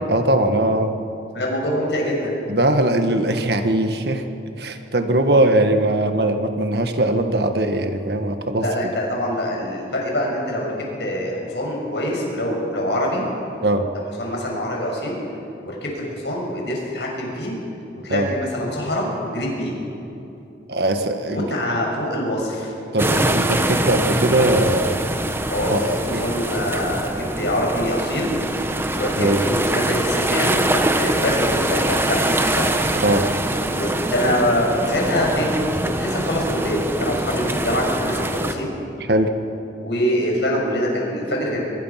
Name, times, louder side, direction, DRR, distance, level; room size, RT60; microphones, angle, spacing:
voice 1, 0.1-0.9 2.5-4.2 4.6-8.9 13.6-13.9 18.1-18.3 20.7-21.6 22.9-25.0 25.7-26.2 29.2-29.4 32.9-33.2 39.0-39.3, right 1 dB, 65° right, 6 dB, 1.6 m, -20 dB
voice 2, 1.3-2.4 8.6-10.7 11.0-13.2 13.9-15.2 15.6-17.5 18.0-19.7 21.3-22.7 25.5-25.8 26.2-28.4 28.9-32.7 33.7-38.7 39.8-41.6, equal, 75° left, -1 dB, 6.6 m, -24 dB
sound 1, 23.0-38.5, right 1 dB, 15° right, 1.1 m, -23 dB
25.0 x 21.5 x 5.9 m, 2.9 s
head